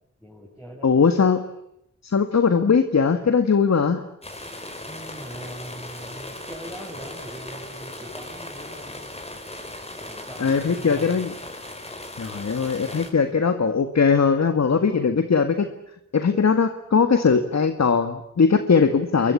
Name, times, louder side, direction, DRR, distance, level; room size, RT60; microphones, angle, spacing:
voice 1, 0.2-1.0 4.8-9.1 10.1-11.2, equal, ahead, -6 dB, 8.0 m, -41 dB
voice 2, 0.8-1.4 2.0-4.0 10.4-11.3 12.2-15.7 16.1-19.3, left 5 dB, 65° left, 8 dB, 1.9 m, -20 dB
sound 1, 4.2-13.1, left 1 dB, 20° left, 5.7 m, -38 dB
29.0 x 23.0 x 8.5 m, 0.76 s
wide cardioid pair, 100°, 29 cm